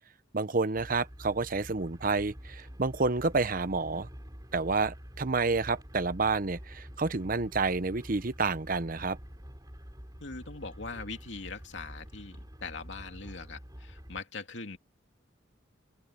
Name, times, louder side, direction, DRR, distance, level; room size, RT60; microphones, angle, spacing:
voice 1, 0.3-4.1 4.5-9.2, right 3 dB, 45° right, 0.9 m, -29 dB
sound 1, 0.8-14.2, equal, 20° right, 3.3 m, -47 dB
voice 2, 10.2-14.8, left 3 dB, 70° left, 2.7 m, -41 dB
open air
head